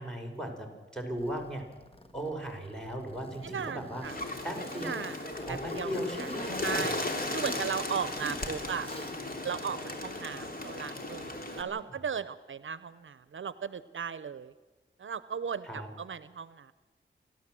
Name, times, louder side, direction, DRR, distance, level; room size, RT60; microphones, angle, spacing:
voice 1, 0.0-1.6 2.1-4.1 4.4-5.0 5.5-6.9 11.6-11.7 15.6-15.9, right 1 dB, 5° left, 0 dB, 4.8 m, -37 dB
Zipper (clothing), 1.2-7.7 8.0-8.5 8.8-9.4, equal, 30° left, 1.7 m, -46 dB
voice 2, 3.4-4.2 4.7-5.2 5.5-5.9 6.2-6.3 6.6-7.0 7.3-8.9 9.4-14.5 15.0-16.7, right 7 dB, 75° right, 15 dB, 0.6 m, -36 dB
Bird, 4.0-11.6, left 2 dB, 45° left, 2.9 m, -36 dB
29.5 x 12.5 x 7.6 m, 1.3 s
wide cardioid pair, 75°, 20 cm